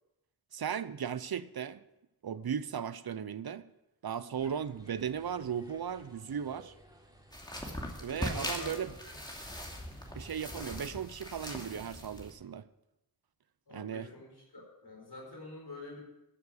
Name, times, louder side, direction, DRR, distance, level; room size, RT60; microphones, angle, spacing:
voice 1, 0.5-1.8 2.2-3.6 4.0-6.7 8.0-8.9 10.1-12.7 13.7-14.1, right 8 dB, 70° right, 16 dB, 0.7 m, -36 dB
sound 1, 4.3-10.8, right 1 dB, 10° right, 3.7 m, -57 dB
sound 2, 7.3-12.3, equal, 10° left, 2.6 m, -40 dB
voice 2, 8.1-9.1 13.7-16.0, left 2 dB, 75° left, -1 dB, 4.5 m, -47 dB
13.5 x 7.2 x 6.3 m, 0.90 s
cardioid pair, 40°, 38 cm